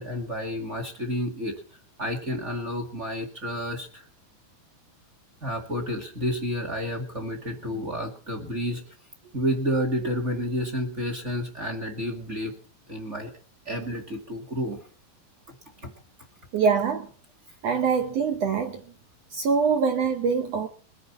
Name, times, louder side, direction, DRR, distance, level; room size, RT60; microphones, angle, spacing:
voice 1, 0.0-1.5 2.0-4.0 5.4-8.8 9.3-12.5 12.9-13.3 13.6-14.8, equal, 25° right, 1.6 m, -30 dB
voice 2, 16.5-17.1 17.6-18.8 19.3-20.7, right 5 dB, 70° right, 1.6 m, -24 dB
22.0 x 9.7 x 4.3 m
omnidirectional pair, 4.2 m